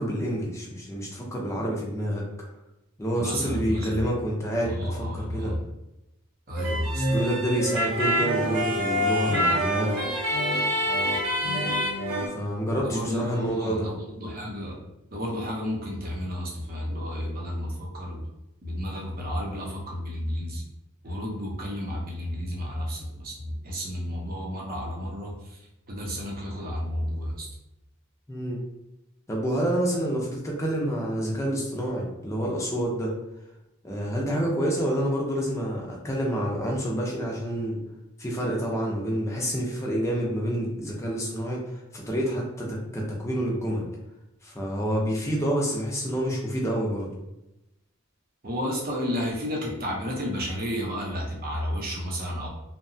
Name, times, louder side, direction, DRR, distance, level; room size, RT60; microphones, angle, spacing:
voice 1, 0.0-2.2 3.0-5.5 7.1-10.0 12.3-13.9 28.3-28.6 29.3-33.1 33.8-37.8 38.2-43.9 44.4-47.1, equal, 15° left, -2 dB, 0.5 m, -28 dB
voice 2, 3.2-4.0 4.6-5.6 6.5-7.1 12.8-14.8 15.1-18.2 18.6-20.6 21.0-27.5 48.4-52.5, equal, 45° right, -2 dB, 0.7 m, -32 dB
sound 1, 6.6-12.3, equal, 85° right, 0.7 m, -26 dB
sound 2, 11.5-14.6, left 3 dB, 90° left, 0.6 m, -45 dB
2.8 x 2.2 x 2.6 m, 0.91 s
head